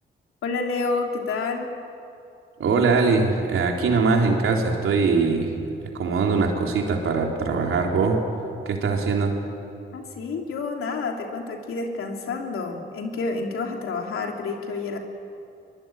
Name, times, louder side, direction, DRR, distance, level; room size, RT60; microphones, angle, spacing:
voice 1, 0.4-1.7 9.9-15.0, left 4 dB, 85° left, 2 dB, 3.0 m, -29 dB
voice 2, 2.6-5.5 5.9-8.2 8.7-9.3, right 4 dB, 80° right, 1 dB, 3.8 m, -22 dB
23.0 x 22.5 x 9.4 m, 2.7 s
supercardioid pair, 55°, 21 cm